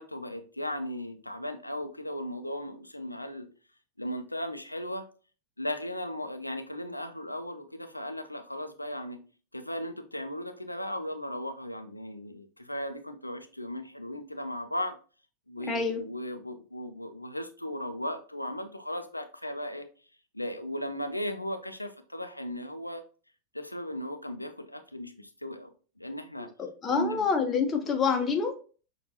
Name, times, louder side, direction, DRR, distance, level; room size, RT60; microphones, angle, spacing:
voice 1, 0.0-3.5 4.0-5.1 5.6-9.2 9.5-15.0 15.5-19.9 20.3-23.0 23.5-25.7 26.0-26.5 26.9-27.3, equal, 85° left, 7 dB, 0.5 m, -36 dB
voice 2, 15.6-16.0 26.8-28.5, left 5 dB, 20° left, 4 dB, 0.8 m, -27 dB
6.2 x 2.5 x 2.7 m, 0.37 s
figure-of-eight pair, 90°, 0 cm